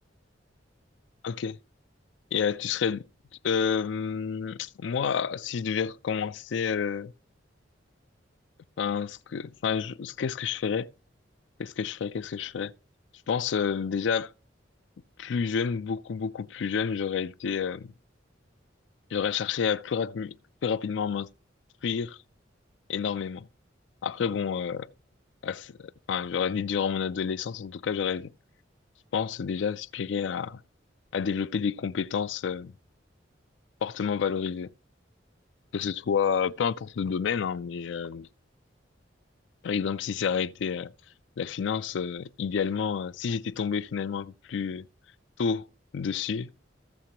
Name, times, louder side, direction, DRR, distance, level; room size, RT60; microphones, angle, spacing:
voice 1, 1.2-1.6 2.3-3.0 3.4-7.1 8.8-10.9 11.6-12.7 13.3-14.3 15.2-17.9 19.1-20.3 20.6-21.3 21.8-22.2 22.9-23.5 24.0-24.9 25.4-28.3 29.1-30.6 31.1-32.7 33.8-34.7 35.7-38.3 39.6-40.9 41.4-44.9 45.4-46.5, left 6 dB, 70° left, 0.4 m, -29 dB
14.5 x 6.7 x 2.9 m
head